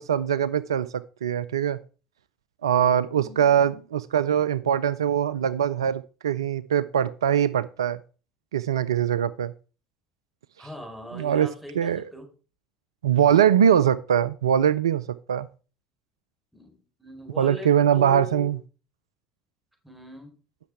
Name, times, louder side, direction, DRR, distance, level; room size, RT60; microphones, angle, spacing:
voice 1, 0.0-1.8 2.6-8.0 8.5-9.5 11.1-11.5 11.8-12.0 13.0-15.5 17.4-18.6, right 9 dB, 80° right, 17 dB, 0.4 m, -22 dB
voice 2, 3.1-3.8 10.6-12.3 13.1-13.5 16.5-18.5 19.8-20.3, left 1 dB, 5° right, 4 dB, 4.3 m, -41 dB
10.0 x 6.5 x 4.9 m, 0.35 s
figure-of-eight pair, 65°, 3 cm